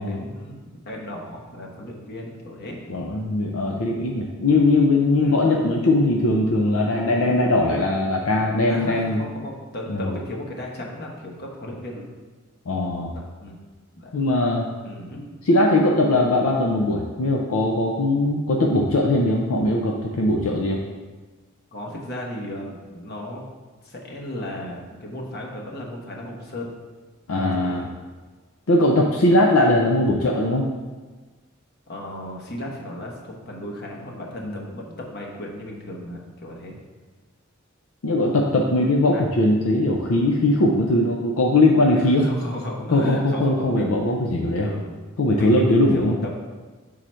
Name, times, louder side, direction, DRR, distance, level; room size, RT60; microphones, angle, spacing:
voice 1, 0.0-2.8 5.2-5.4 8.7-12.1 13.1-13.6 14.0-14.1 14.8-15.3 21.7-23.4 23.8-26.7 27.3-27.8 31.9-36.8 39.1-39.3 42.2-43.9 44.3-45.0 45.3-46.3, left 1 dB, 50° left, -1 dB, 1.1 m, -35 dB
voice 2, 2.9-9.2 9.9-10.2 12.7-13.1 14.1-14.6 15.4-20.8 27.3-27.8 28.7-30.7 34.4-34.6 38.0-42.3 42.9-44.7 45.2-46.1, left 2 dB, 70° left, 0 dB, 0.5 m, -20 dB
6.2 x 3.9 x 4.3 m, 1.3 s
head